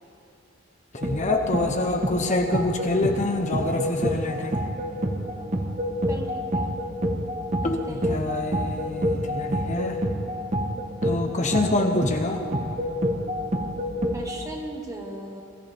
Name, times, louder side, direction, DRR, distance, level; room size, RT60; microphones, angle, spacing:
voice 1, 1.0-4.6 7.6-7.8 8.1-10.0 11.0-12.4, left 2 dB, 35° left, 4 dB, 0.9 m, -26 dB
sound 1, 1.0-14.4, equal, 35° right, 1.3 m, -28 dB
voice 2, 6.1-6.7 7.6-8.3 14.1-15.4, right 1 dB, 15° right, 1 dB, 1.7 m, -37 dB
23.0 x 14.5 x 3.6 m, 3.0 s
head